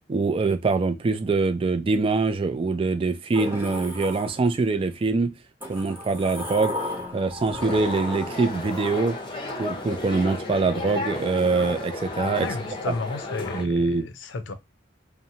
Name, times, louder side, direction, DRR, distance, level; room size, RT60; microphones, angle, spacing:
voice 1, 0.1-5.3 5.7-6.8 7.1-9.2 9.6-12.5 12.8-12.9 13.5-14.1, right 3 dB, 30° right, 0.3 m, -24 dB
Sliding door, 3.3-4.8 5.6-10.2, left 1 dB, 10° right, 0.9 m, -35 dB
sound 1, 7.6-13.6, left 2 dB, 30° left, 0.5 m, -33 dB
voice 2, 12.4-14.5, left 3 dB, 85° left, 0.5 m, -33 dB
2.9 x 2.1 x 2.6 m
head